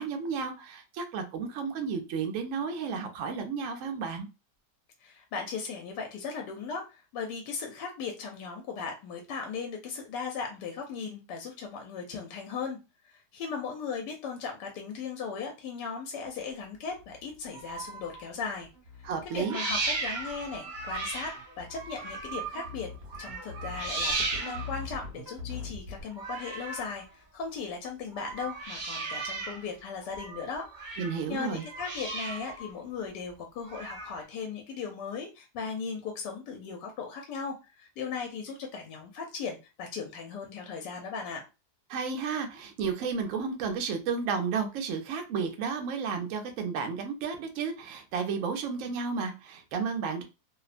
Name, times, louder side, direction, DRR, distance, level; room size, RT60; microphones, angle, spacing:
voice 1, 0.0-4.3 19.0-19.6 31.0-31.6 41.9-50.2, right 5 dB, 65° right, 5 dB, 0.8 m, -32 dB
voice 2, 5.0-12.8 13.0-18.7 19.3-22.9 23.2-30.7 31.3-41.4, left 5 dB, 85° left, 3 dB, 1.2 m, -37 dB
sound 1, 16.2-26.0, left 4 dB, 40° right, 1.2 m, -44 dB
sound 2, 17.5-18.3 19.3-22.8 23.1-24.9 26.1-27.0 28.1-29.7 30.0-31.2 31.5-32.7 33.7-34.2, right 3 dB, 90° right, 0.4 m, -36 dB
2.8 x 2.1 x 2.4 m, 0.28 s
omnidirectional pair, 1.8 m